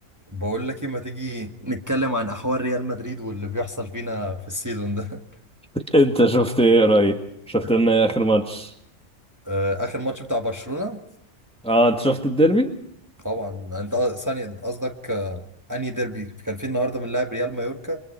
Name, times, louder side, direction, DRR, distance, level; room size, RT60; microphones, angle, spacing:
voice 1, 0.3-5.2 7.6-7.7 9.4-11.0 13.2-15.4 15.7-18.0, equal, 15° right, 3 dB, 1.7 m, -27 dB
voice 2, 5.7-7.2 7.5-8.7 11.6-12.7, right 1 dB, 5° left, 5 dB, 1.7 m, -18 dB
29.5 x 23.5 x 4.5 m, 0.69 s
omnidirectional pair, 1.3 m